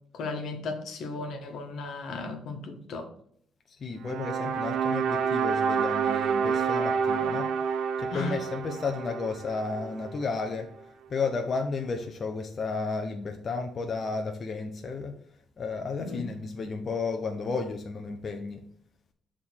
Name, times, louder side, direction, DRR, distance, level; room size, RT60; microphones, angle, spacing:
voice 1, 0.1-3.1 8.1-8.4 16.0-16.3, left 3 dB, 75° left, 1.5 m, -35 dB
voice 2, 3.7-7.5 8.0-10.7 11.1-15.2 15.6-18.6, left 4 dB, 45° left, 0.8 m, -32 dB
sound 1, 4.0-10.3, right 6 dB, 80° right, 0.6 m, -28 dB
6.7 x 3.7 x 6.3 m
cardioid pair, 90°, 0 cm